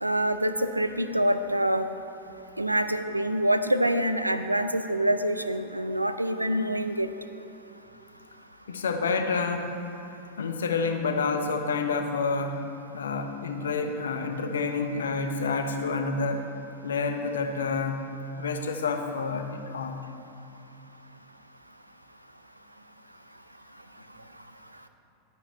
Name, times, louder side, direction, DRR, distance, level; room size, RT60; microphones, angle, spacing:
voice 1, 0.0-1.9 2.6-7.1, right 1 dB, 85° right, 10 dB, 0.5 m, -26 dB
voice 2, 8.7-9.8 10.4-12.7 12.9-16.5 16.8-20.0, left 4 dB, 65° left, 6 dB, 0.9 m, -29 dB
11.5 x 10.0 x 4.3 m, 2.8 s
figure-of-eight pair, 90°, 0 cm